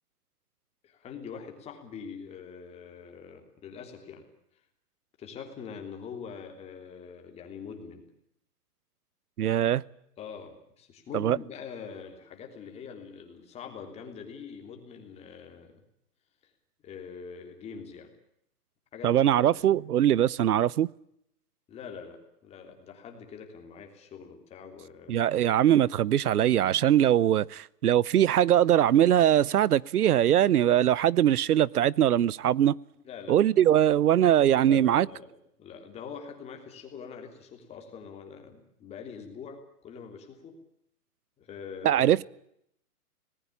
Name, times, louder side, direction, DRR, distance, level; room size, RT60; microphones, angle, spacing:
voice 1, 0.8-4.2 4.5-4.6 5.2-8.0 10.2-15.8 16.4-16.5 16.8-18.1 18.9-19.2 19.6-19.7 21.7-25.3 33.0-33.4 34.6-35.3 35.6-40.6 41.4-42.2, left 6 dB, 15° left, 3.2 m, -44 dB
voice 2, 9.4-9.8 11.1-11.4 19.0-20.9 25.1-32.8 33.3-35.1 41.8-42.2, right 11 dB, 70° right, 0.9 m, -22 dB
26.0 x 19.5 x 8.5 m
hypercardioid pair, 160°, 47 cm